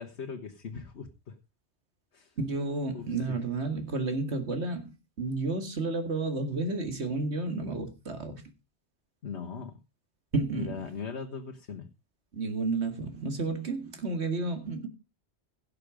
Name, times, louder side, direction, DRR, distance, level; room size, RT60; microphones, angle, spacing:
voice 1, 0.0-1.3 2.1-2.3 2.9-3.4 9.2-9.8 10.5-11.9, left 5 dB, 85° left, 1.5 m, -40 dB
voice 2, 2.4-8.4 10.3-10.8 12.3-14.9, right 3 dB, 90° right, 2.3 m, -31 dB
16.5 x 6.8 x 5.0 m
omnidirectional pair, 1.1 m